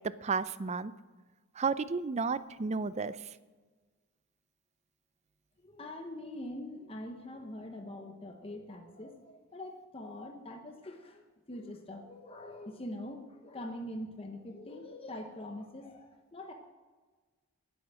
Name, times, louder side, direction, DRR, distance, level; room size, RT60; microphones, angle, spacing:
voice 1, 0.2-0.9 1.6-3.2, right 4 dB, 30° right, 16 dB, 0.4 m, -32 dB
voice 2, 5.6-16.5, left 1 dB, 25° left, 4 dB, 1.0 m, -44 dB
19.5 x 8.1 x 6.3 m, 1.4 s
head